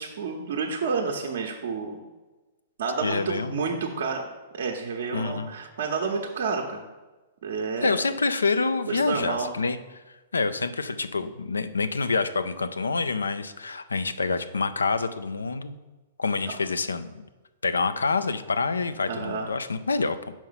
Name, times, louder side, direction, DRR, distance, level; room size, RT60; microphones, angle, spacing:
voice 1, 0.0-2.0 2.8-4.2 4.5-6.9 7.4-8.2 8.9-9.5 19.1-19.5, right 5 dB, 65° right, 1 dB, 0.8 m, -30 dB
voice 2, 3.0-3.7 5.1-5.5 7.8-10.0 10.3-15.8 16.2-17.1 17.6-20.3, left 4 dB, 90° left, 11 dB, 0.4 m, -27 dB
5.6 x 4.5 x 5.6 m, 1.2 s
hypercardioid pair, 115°, 0 cm